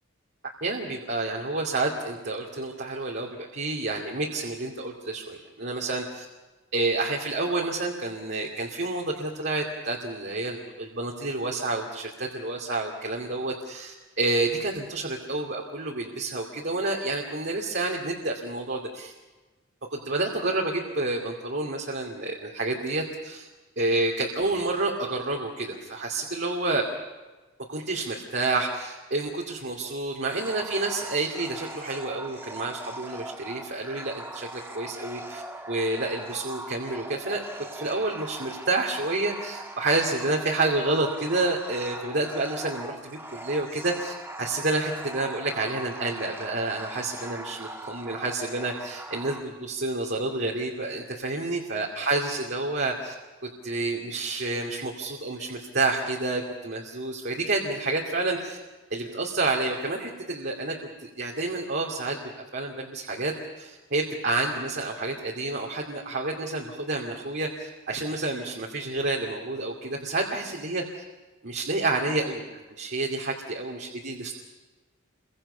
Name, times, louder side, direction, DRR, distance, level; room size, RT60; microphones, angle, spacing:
voice 1, 0.6-6.2 6.7-19.1 19.9-23.5 23.8-26.8 27.7-35.4 35.7-53.1 53.6-58.6 58.9-60.7 61.0-71.0 71.4-72.5 72.8-74.1, right 2 dB, 55° right, -1 dB, 2.6 m, -29 dB
sound 1, 30.3-49.4, right 1 dB, 10° right, 1.6 m, -40 dB
29.5 x 24.0 x 5.7 m, 1.2 s
head